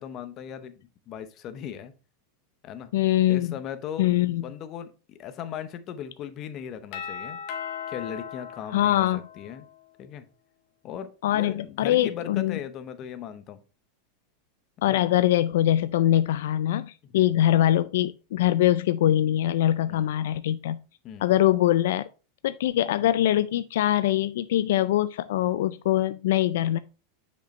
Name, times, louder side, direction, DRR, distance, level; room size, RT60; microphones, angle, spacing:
voice 1, 0.0-1.9 2.6-2.9 3.3-4.1 4.4-7.4 7.9-9.7 10.0-10.3 10.8-13.6 14.9-15.0 17.1-17.3 19.9-20.1 21.0-21.3, left 9 dB, 35° left, 0.8 m, -38 dB
voice 2, 2.9-3.5 4.0-4.4 8.7-9.2 11.2-12.6 14.8-20.8 21.2-22.1 22.4-26.8, left 13 dB, 80° left, 0.3 m, -23 dB
Doorbell, 6.9-9.7, left 8 dB, 50° left, 1.2 m, -37 dB
6.7 x 5.2 x 3.2 m
supercardioid pair, 145°, 0 cm